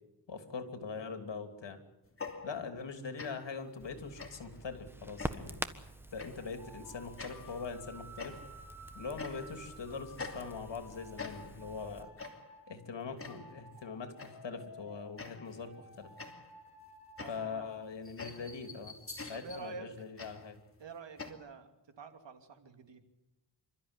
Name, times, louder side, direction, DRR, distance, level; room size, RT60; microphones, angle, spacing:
voice 1, 0.3-1.8 2.4-5.7 6.1-8.4 8.9-12.1 12.7-16.1 17.3-18.9 19.3-20.6, left 5 dB, 80° left, 6 dB, 3.2 m, -42 dB
sound 1, 2.1-2.9 3.2-3.6 4.2-4.6 5.2-5.6 6.2-6.5 7.2-7.6 8.2-8.7 9.2-9.7 10.2-10.9 11.2-11.7 12.2-12.6 13.2-13.6 14.2-14.5 15.2-15.7 16.2-21.3, left 4 dB, 30° left, 2.9 m, -47 dB
Crackle, 3.8-12.0, right 1 dB, 5° right, 1.4 m, -46 dB
sound 2, 6.3-12.7 13.2-17.8, equal, 55° left, 6.2 m, -55 dB
voice 2, 17.2-17.7 19.3-19.9 20.8-21.7 22.0-23.1, right 4 dB, 80° right, 6 dB, 2.8 m, -47 dB
28.0 x 13.5 x 9.9 m, 0.96 s
wide cardioid pair, 90°, 42 cm